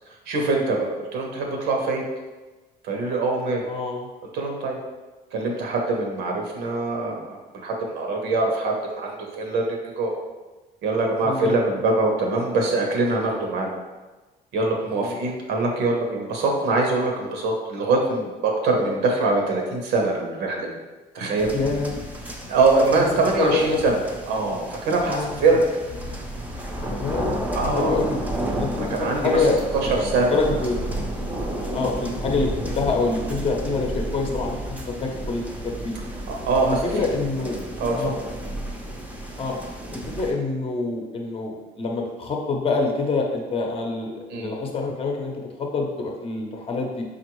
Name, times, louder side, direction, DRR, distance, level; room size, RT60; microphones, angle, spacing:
voice 1, 0.3-2.0 2.8-3.7 4.3-4.8 5.3-10.1 10.8-13.7 14.5-20.7 21.1-21.5 22.5-24.0 24.3-25.6 27.5-28.0 28.8-29.5 29.8-30.4 36.3-36.8 37.8-38.1 44.3-44.5, right 3 dB, 90° right, 0 dB, 0.9 m, -23 dB
voice 2, 3.7-4.1 11.2-11.5 15.0-15.2 21.5-21.9 23.0-23.1 23.3-23.8 25.1-25.3 26.9-27.3 27.8-28.2 28.6-29.6 30.3-30.8 31.7-35.9 36.7-37.6 37.9-38.2 39.4-39.6 39.9-47.0, left 3 dB, 35° left, 1 dB, 0.7 m, -26 dB
sound 1, 21.4-40.3, right 1 dB, 10° right, 0.5 m, -32 dB
5.3 x 2.5 x 3.0 m, 1.2 s
cardioid pair, 110°, 17 cm